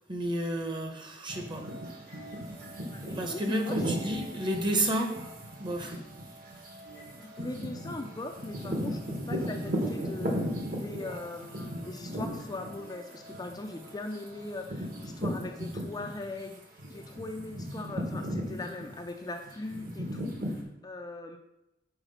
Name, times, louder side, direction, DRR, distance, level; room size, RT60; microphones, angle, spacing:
voice 1, 0.1-1.7 3.2-5.1 5.6-6.0, right 1 dB, 25° right, 3 dB, 0.9 m, -31 dB
sound 1, 1.3-16.4 16.8-20.6, equal, 50° right, 1.2 m, -36 dB
voice 2, 2.9-3.9 7.1-10.4 10.7-16.6 16.9-21.4, left 2 dB, 20° left, 4 dB, 0.4 m, -40 dB
5.8 x 4.0 x 5.5 m, 0.91 s
head